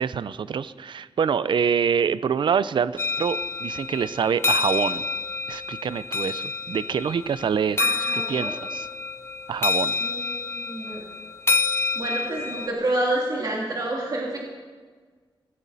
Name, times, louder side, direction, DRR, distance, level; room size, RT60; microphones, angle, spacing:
voice 1, 0.0-5.0 5.5-7.8 8.3-8.9 9.5-9.9, right 7 dB, 65° right, 16 dB, 0.5 m, -25 dB
sound 1, 3.0-12.7, left 4 dB, 30° left, 0.6 m, -28 dB
voice 2, 7.8-8.5 10.0-11.0 11.9-14.4, right 1 dB, 45° right, -3 dB, 2.7 m, -28 dB
17.5 x 16.0 x 4.1 m, 1.5 s
wide cardioid pair, 140°, 9 cm